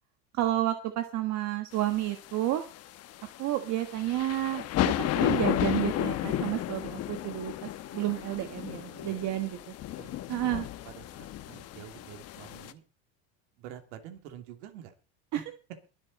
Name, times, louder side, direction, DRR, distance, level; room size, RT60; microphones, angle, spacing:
voice 1, 0.3-2.6 3.4-9.6 10.3-10.7 15.3-15.4, right 14 dB, 55° right, 7 dB, 1.5 m, -31 dB
sound 1, 1.8-12.7, left 13 dB, 45° left, 1.1 m, -33 dB
voice 2, 10.0-10.4 10.8-12.8 13.5-14.9 15.3-15.4, right 10 dB, 80° right, 5 dB, 3.0 m, -47 dB
22.5 x 7.8 x 4.2 m, 0.34 s
supercardioid pair, 120°, 35 cm